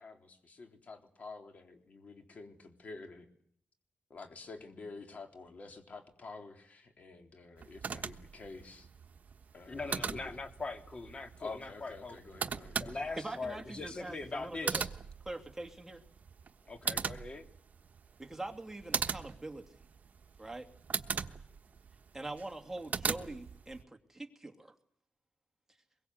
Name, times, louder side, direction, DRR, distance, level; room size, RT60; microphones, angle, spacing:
voice 1, 0.0-3.3 4.1-8.9 9.5-10.3 11.4-13.0, left 3 dB, 50° left, 4 dB, 3.7 m, -49 dB
sound 1, 7.6-23.8, right 6 dB, 50° right, 1.2 m, -40 dB
voice 2, 9.7-12.2 12.8-14.9 16.7-17.4, left 3 dB, 30° left, 5 dB, 2.5 m, -41 dB
voice 3, 13.2-14.9 15.2-16.0 18.2-19.7 20.4-20.7 22.1-24.7, right 2 dB, 10° right, 4 dB, 2.6 m, -43 dB
24.5 x 22.5 x 8.0 m, 0.66 s
wide cardioid pair, 130°, 3 cm